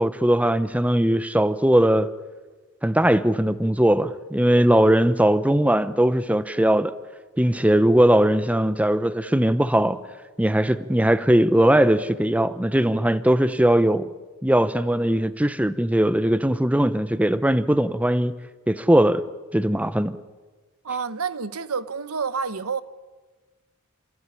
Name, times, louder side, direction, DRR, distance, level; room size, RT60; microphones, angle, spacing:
voice 1, 0.0-2.1 2.8-6.9 7.4-10.0 10.4-14.1 14.4-18.3 18.7-19.2 19.5-20.2, right 1 dB, 5° right, 0.8 m, -20 dB
voice 2, 20.8-22.8, right 5 dB, 85° right, 1.0 m, -28 dB
27.0 x 15.5 x 9.8 m
head